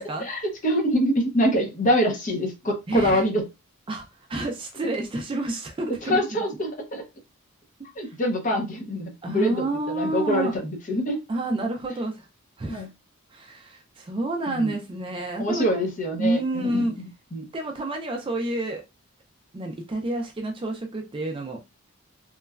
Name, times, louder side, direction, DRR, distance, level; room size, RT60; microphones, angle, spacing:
voice 1, 0.2-3.4 5.9-7.0 8.0-11.2 12.7-12.9 14.5-14.7 15.4-17.5, equal, 35° left, 2 dB, 0.7 m, -25 dB
voice 2, 2.9-3.2 3.9-6.4 8.1-8.2 9.2-10.6 11.3-12.3 12.6-12.9 13.3-15.8 16.2-17.0 17.5-18.8 19.5-21.6, right 2 dB, 25° right, 2 dB, 0.3 m, -29 dB
3.0 x 2.2 x 2.3 m, 0.25 s
head